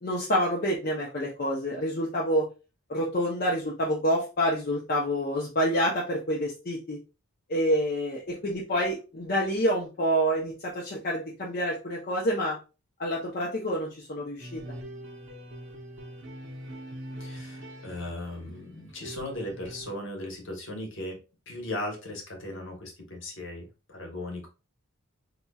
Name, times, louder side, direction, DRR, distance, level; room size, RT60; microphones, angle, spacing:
voice 1, 0.0-2.5 2.9-7.0 7.5-12.6 13.0-14.6, equal, 45° left, -4 dB, 0.7 m, -27 dB
sound 1, 14.4-19.9, right 1 dB, 60° right, 0.8 m, -43 dB
voice 2, 17.2-21.2 21.5-24.5, left 1 dB, 60° left, 1 dB, 1.1 m, -37 dB
4.1 x 2.9 x 2.3 m, 0.31 s
head